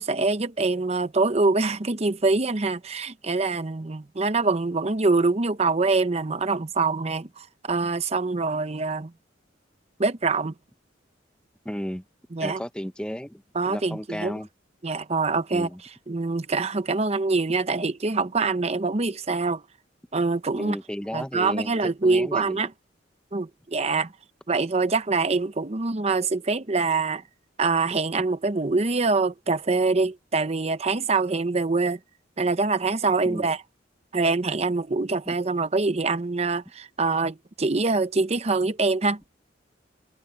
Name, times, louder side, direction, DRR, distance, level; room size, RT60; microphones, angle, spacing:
voice 1, 0.0-9.1 10.0-10.5 12.3-12.6 13.5-14.4 14.8-15.7 16.1-19.6 20.1-20.8 21.1-22.7 23.3-24.1 24.5-27.2 27.6-32.0 32.4-33.6 34.1-39.2, right 3 dB, 35° right, 0.8 m, -24 dB
voice 2, 11.6-12.0 12.4-14.5 15.5-15.8 20.6-22.6 33.2-33.5, equal, 5° left, 1.0 m, -34 dB
head